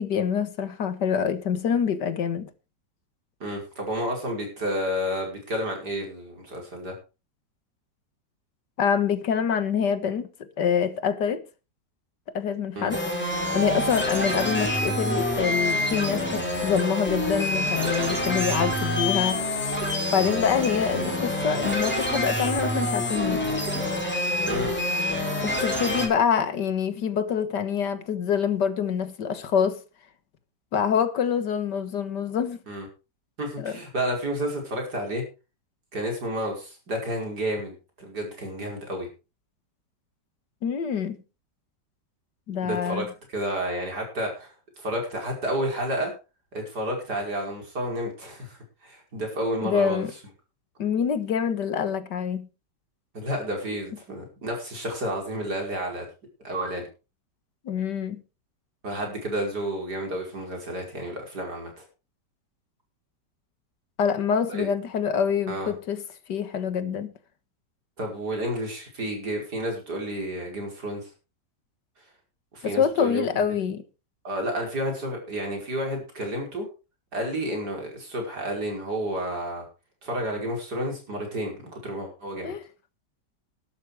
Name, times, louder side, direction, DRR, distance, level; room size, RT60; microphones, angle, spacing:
voice 1, 0.0-2.5 8.8-10.3 10.6-11.4 12.3-13.0 13.5-19.4 20.1-23.5 25.4-29.8 30.7-32.6 33.6-33.8 40.6-41.2 42.5-43.1 49.6-50.1 50.8-52.5 57.7-58.2 64.0-66.0 66.3-67.1 72.6-73.8 82.4-82.6, left 7 dB, 75° left, 2.0 m, -26 dB
voice 2, 3.4-6.9 12.7-13.0 20.2-20.3 24.5-24.8 32.7-32.9 33.4-35.2 35.9-39.1 42.6-43.1 43.3-46.1 46.5-50.0 53.1-56.1 56.4-56.9 58.8-61.8 64.5-64.7 65.5-65.7 68.0-71.1 72.5-73.4 74.2-76.7 77.1-79.7 80.0-82.5, equal, 65° right, 5.7 m, -31 dB
sound 1, 12.9-26.1, left 1 dB, 5° left, 4.4 m, -27 dB
12.5 x 12.0 x 4.8 m
omnidirectional pair, 1.9 m